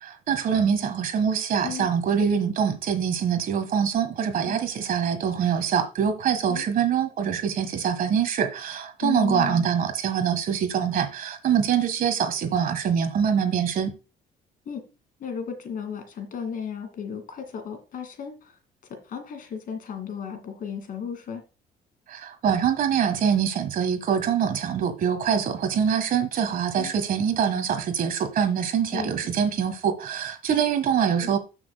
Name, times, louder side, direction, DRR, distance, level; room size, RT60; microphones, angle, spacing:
voice 1, 0.0-13.9 22.1-31.4, right 7 dB, 55° right, 1.5 m, -24 dB
voice 2, 9.0-9.7 14.7-14.8 15.2-18.5 18.9-21.4 26.8-26.9 28.9-29.1 30.5-30.6 31.2-31.4, left 7 dB, 55° left, 2.2 m, -34 dB
14.5 x 6.2 x 2.2 m
cardioid pair, 110°, 17 cm